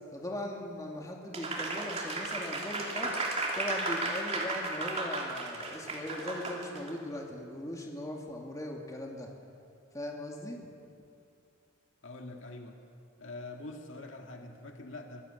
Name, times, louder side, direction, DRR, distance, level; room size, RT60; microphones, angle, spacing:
voice 1, 0.1-3.1 3.5-9.3 9.9-10.6, left 1 dB, 15° left, 0 dB, 2.5 m, -39 dB
Applause, 1.3-6.9, right 2 dB, 30° right, 3.1 m, -34 dB
voice 2, 12.0-12.8 13.2-15.2, left 2 dB, 65° left, 2 dB, 2.0 m, -44 dB
24.0 x 17.0 x 8.1 m, 2.5 s
head